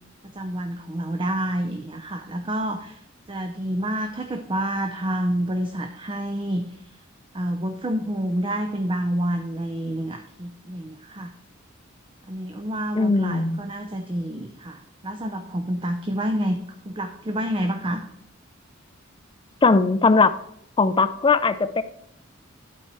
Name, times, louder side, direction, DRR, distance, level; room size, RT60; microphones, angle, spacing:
voice 1, 0.3-3.0 3.3-6.8 7.3-11.3 12.3-16.6 16.9-18.0, right 1 dB, 25° right, 4 dB, 0.6 m, -28 dB
voice 2, 13.0-13.6 19.6-20.3 20.8-21.8, left 4 dB, 25° left, 10 dB, 0.4 m, -19 dB
11.5 x 4.6 x 4.7 m, 0.74 s
head